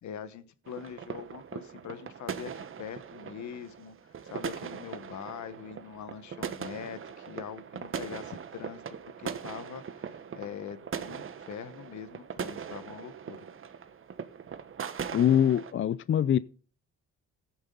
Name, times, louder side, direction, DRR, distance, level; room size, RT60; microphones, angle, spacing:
voice 1, 0.0-8.8 9.2-13.4, left 8 dB, 70° left, 1.3 m, -43 dB
sound 1, 0.7-15.7, right 7 dB, 45° right, 1.2 m, -40 dB
voice 2, 15.1-16.4, left 9 dB, 40° left, 0.5 m, -23 dB
15.0 x 9.4 x 3.9 m
cardioid pair, 90°, 30 cm